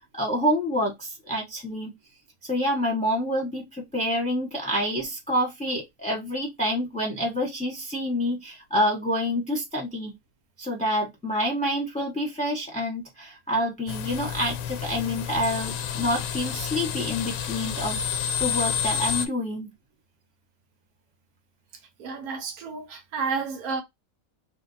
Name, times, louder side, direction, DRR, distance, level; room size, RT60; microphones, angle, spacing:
voice 1, 0.1-1.9 2.4-10.1 10.6-18.0 18.4-19.7, equal, 5° left, 1.0 m, -27 dB
sound 1, 13.9-19.3, left 8 dB, 85° left, 1.1 m, -30 dB
voice 2, 22.0-23.8, right 5 dB, 85° right, 1.4 m, -31 dB
3.4 x 2.8 x 3.9 m
omnidirectional pair, 1.5 m